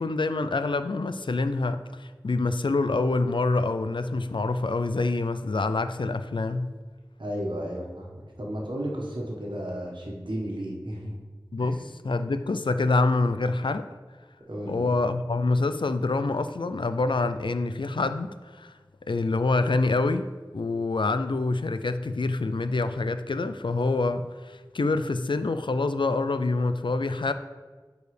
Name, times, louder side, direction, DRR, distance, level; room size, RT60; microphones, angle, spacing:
voice 1, 0.0-6.7 11.5-13.9 14.7-18.7 19.1-27.3, left 3 dB, 85° left, 0.4 m, -26 dB
voice 2, 7.2-11.2 11.6-11.8 14.5-14.9, equal, 80° right, 1.4 m, -33 dB
9.2 x 4.7 x 3.3 m
wide cardioid pair, 40°, 8 cm